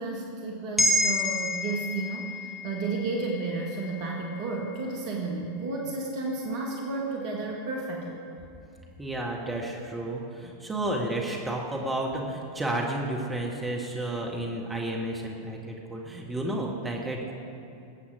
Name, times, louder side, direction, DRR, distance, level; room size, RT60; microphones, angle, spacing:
voice 1, 0.0-8.2, right 3 dB, 45° right, -1 dB, 1.7 m, -32 dB
sound 1, 0.8-5.3 5.7-5.8, left 1 dB, 5° left, 1.7 m, -30 dB
voice 2, 9.0-17.3, right 1 dB, 10° right, -1 dB, 1.7 m, -31 dB
20.5 x 8.3 x 5.1 m, 2.8 s
figure-of-eight pair, 90°, 0 cm